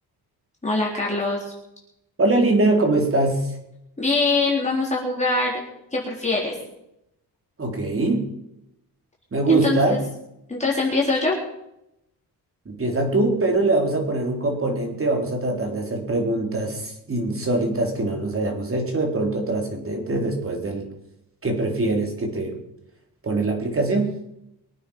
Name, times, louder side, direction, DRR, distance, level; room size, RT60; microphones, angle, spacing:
voice 1, 0.6-1.5 4.0-5.6 5.9-6.5 9.5-10.0 10.5-11.4, left 3 dB, 15° left, -4 dB, 4.2 m, -23 dB
voice 2, 2.2-3.5 7.6-8.3 9.3-10.0 12.7-20.9 21.4-22.6 23.2-24.1, right 2 dB, 30° right, 2 dB, 3.9 m, -23 dB
23.5 x 9.2 x 5.7 m, 0.82 s
cardioid pair, 115°, 41 cm